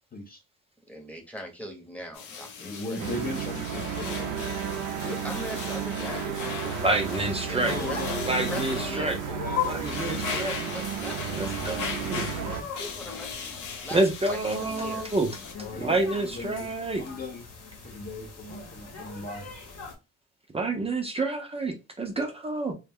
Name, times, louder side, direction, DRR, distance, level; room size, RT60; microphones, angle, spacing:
voice 1, 0.9-3.1 5.0-9.2 10.2-11.5 12.8-15.1, equal, 5° left, 0.8 m, -41 dB
sound 1, 2.1-15.5, left 5 dB, 80° left, 0.6 m, -38 dB
voice 2, 2.6-4.5 7.6-10.7 11.6-12.8 15.6-16.7 17.0-17.5 17.8-19.5, left 2 dB, 30° left, 0.6 m, -39 dB
sound 2, 3.0-12.6, right 9 dB, 85° right, 0.5 m, -33 dB
sound 3, 6.7-19.9, left 6 dB, 55° left, 0.9 m, -40 dB
voice 3, 6.8-7.8 8.2-9.2 9.6-10.5 11.4-12.3 13.9-15.3 15.8-17.0 20.5-22.7, right 2 dB, 20° right, 0.5 m, -28 dB
2.2 x 2.0 x 3.5 m
cardioid pair, 90°, 30 cm